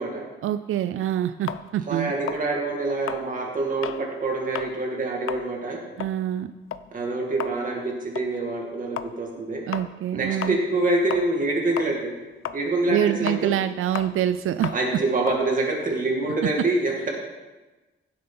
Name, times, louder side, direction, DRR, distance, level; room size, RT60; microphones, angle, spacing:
voice 1, 0.4-2.1 6.0-6.5 9.7-10.6 12.9-14.7, right 11 dB, 90° right, 11 dB, 0.4 m, -25 dB
sound 1, 1.5-4.1 4.4-4.8 5.1-11.5 11.8-16.5, left 9 dB, 85° left, 0.5 m, -36 dB
voice 2, 1.9-5.8 6.9-9.6 10.1-12.1 12.5-13.5 14.7-16.9, right 2 dB, 40° right, -1 dB, 2.3 m, -26 dB
16.0 x 7.7 x 3.9 m, 1.2 s
wide cardioid pair, 175°, 21 cm